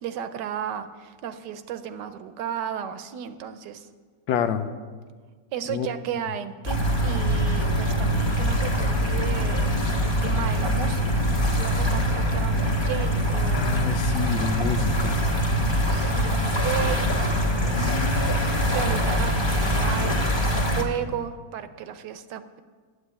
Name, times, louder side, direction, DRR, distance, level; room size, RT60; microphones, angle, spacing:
voice 1, 0.0-3.9 5.5-13.9 15.9-18.0 18.7-22.6, right 9 dB, 70° right, 11 dB, 1.2 m, -34 dB
voice 2, 4.3-4.7 5.7-5.9 13.5-15.2 17.6-18.7, left 8 dB, 85° left, 9 dB, 1.5 m, -28 dB
sound 1, 6.6-20.8, equal, 20° left, 1.0 m, -23 dB
9.2 x 8.1 x 8.6 m, 1.5 s
omnidirectional pair, 2.0 m